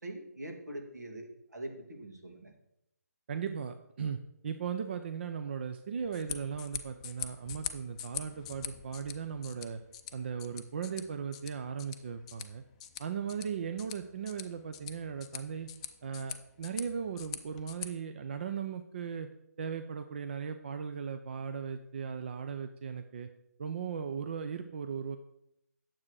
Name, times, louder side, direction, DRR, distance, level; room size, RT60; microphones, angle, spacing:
voice 1, 0.0-2.5, right 1 dB, 75° right, 2 dB, 2.4 m, -43 dB
voice 2, 3.3-9.8 10.1-12.6 13.0-15.7 16.0-19.3 19.6-23.3 23.6-25.2, right 7 dB, 40° right, 8 dB, 0.6 m, -37 dB
sound 1, 6.0-17.9, left 10 dB, 25° left, 0.5 m, -44 dB
9.5 x 7.5 x 4.7 m, 0.82 s
figure-of-eight pair, 145°, 9 cm